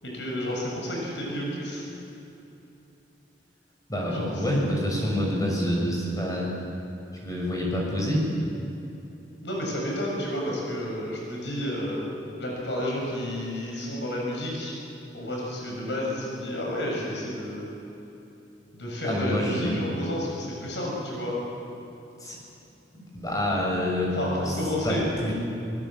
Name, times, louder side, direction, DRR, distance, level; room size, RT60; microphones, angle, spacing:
voice 1, 0.0-1.8 4.1-4.4 9.4-12.1 12.4-14.7 15.1-17.7 18.7-21.4 24.1-25.0, left 1 dB, 85° left, -2 dB, 7.2 m, -31 dB
voice 2, 3.9-6.5 7.2-8.3 19.0-19.8 22.2-22.4 22.9-24.1 24.4-24.6 24.8-25.3, equal, 20° left, -3 dB, 6.6 m, -27 dB
25.0 x 21.0 x 7.6 m, 2.9 s
head